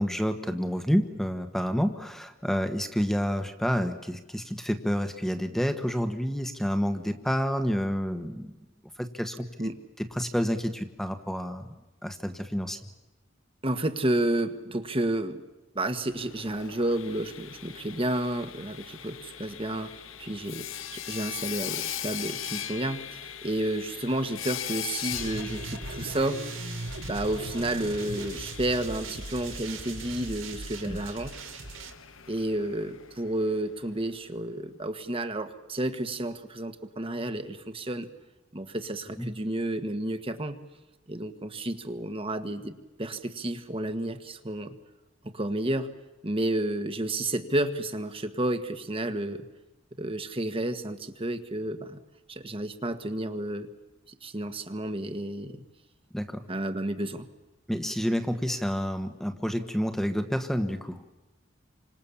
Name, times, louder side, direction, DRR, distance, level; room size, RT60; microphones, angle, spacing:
voice 1, 0.0-8.5 9.0-9.5 10.0-11.8 12.0-12.8 30.8-31.0 39.2-39.3 56.1-56.5 57.7-61.0, equal, ahead, 7 dB, 1.4 m, -29 dB
voice 2, 13.6-15.4 15.7-19.9 20.2-26.4 27.0-31.4 32.3-38.1 38.5-40.6 41.1-44.7 45.2-45.9 46.2-49.4 50.0-52.0 52.3-53.7 54.2-55.6 56.5-57.3, right 1 dB, 30° right, 9 dB, 1.5 m, -31 dB
Sawing, 16.1-33.9, left 10 dB, 90° left, 1.3 m, -40 dB
sound 1, 25.1-31.9, right 2 dB, 80° right, 3.0 m, -38 dB
30.0 x 26.0 x 7.1 m, 1.0 s
head